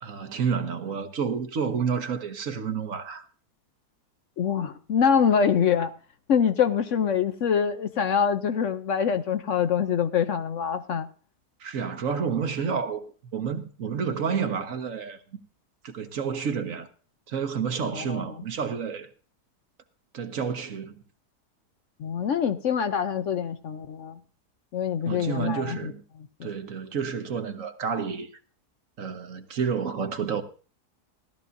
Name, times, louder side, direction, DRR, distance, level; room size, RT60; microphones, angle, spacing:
voice 1, 0.0-3.3 11.6-13.1 13.3-15.4 15.8-16.9 17.3-19.1 20.1-20.9 25.0-26.0 26.4-28.3 29.0-30.4, right 6 dB, 60° right, 1.3 m, -30 dB
voice 2, 4.4-5.9 6.3-11.1 17.9-18.3 22.0-24.2 24.7-25.9 26.4-26.5, left 7 dB, 60° left, 0.9 m, -25 dB
17.0 x 12.5 x 2.6 m
omnidirectional pair, 1.7 m